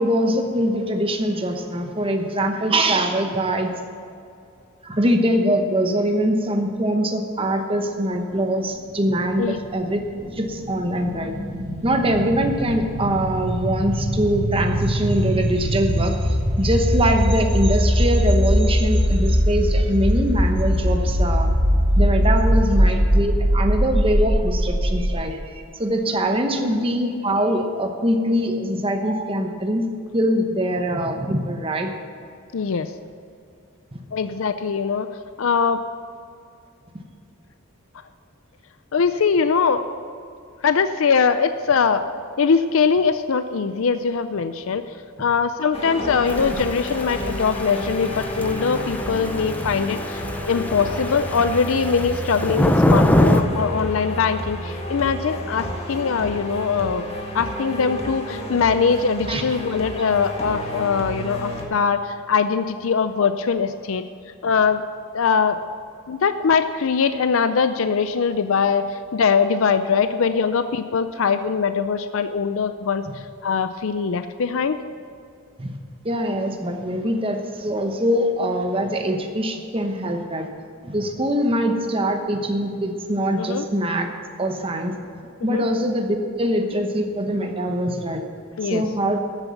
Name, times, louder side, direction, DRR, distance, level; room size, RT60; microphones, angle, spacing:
voice 1, 0.0-3.7 4.8-10.0 10.3-11.3 11.8-21.5 22.0-29.9 30.1-31.9 59.3-59.4 75.6-75.8 76.0-80.5 80.8-84.1 84.4-85.0 85.4-88.2 88.6-89.2, equal, 25° right, 4 dB, 1.0 m, -23 dB
sound 1, 9.3-25.1, equal, 85° right, 3.7 m, -21 dB
voice 2, 32.5-32.9 34.1-35.1 35.4-35.8 38.9-39.8 40.6-42.0 42.4-44.8 45.2-57.0 57.3-64.0 64.4-64.8 65.1-65.6 66.1-74.8 83.4-83.7 85.4-85.6 88.6-88.8, left 5 dB, 65° left, 10 dB, 0.5 m, -22 dB
sound 2, 45.7-61.6, equal, 25° left, 1.6 m, -31 dB
Thunder / Rain, 46.3-53.4, left 1 dB, 5° left, 0.5 m, -24 dB
14.0 x 8.1 x 7.1 m, 2.5 s
head